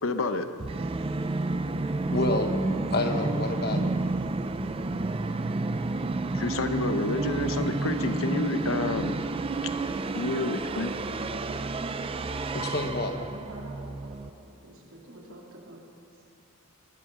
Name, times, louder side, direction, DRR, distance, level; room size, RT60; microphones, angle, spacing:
voice 1, 0.0-0.5 6.3-9.2 10.1-10.9, left 2 dB, 65° left, 9 dB, 0.8 m, -29 dB
Musical instrument, 0.6-14.3, right 2 dB, 25° right, 0.4 m, -30 dB
voice 2, 1.8-2.6 2.9-3.9 12.5-13.2, left 2 dB, 45° left, 5 dB, 1.2 m, -29 dB
voice 3, 13.1-15.8, right 2 dB, 70° right, -2 dB, 2.9 m, -47 dB
20.5 x 9.2 x 6.1 m, 2.7 s
head